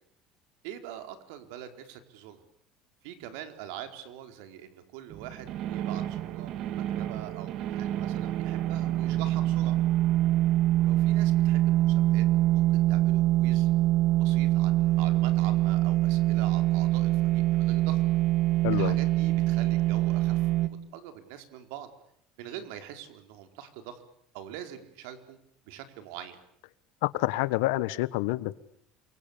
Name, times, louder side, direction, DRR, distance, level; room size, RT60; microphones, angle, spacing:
voice 1, 0.6-2.4 3.0-9.8 10.8-12.3 12.5-13.7 14.2-18.0 18.7-21.9 22.4-24.0 24.3-25.4 25.7-26.4, right 10 dB, 80° right, 8 dB, 4.5 m, -44 dB
sound 1, 5.1-20.7, right 15 dB, 50° right, 1.8 m, -25 dB
voice 2, 18.6-19.0 27.0-28.5, left 19 dB, 85° left, 16 dB, 1.4 m, -27 dB
28.5 x 24.0 x 8.7 m, 0.70 s
cardioid pair, 155°, 0 cm